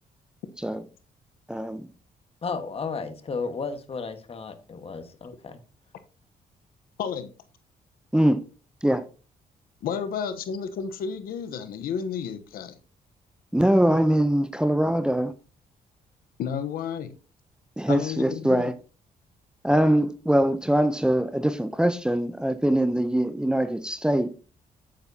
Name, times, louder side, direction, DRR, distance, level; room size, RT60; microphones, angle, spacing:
voice 1, 1.5-1.9 8.1-8.4 8.8-9.0 13.5-15.3 17.8-18.7 19.6-24.3, right 1 dB, 5° right, 0.7 m, -22 dB
voice 2, 2.4-5.6, left 4 dB, 40° left, 1.5 m, -33 dB
voice 3, 9.8-12.8 16.4-17.1 17.9-18.7, left 7 dB, 85° left, 1.0 m, -31 dB
9.1 x 8.9 x 2.8 m
cardioid pair, 100°, 15 cm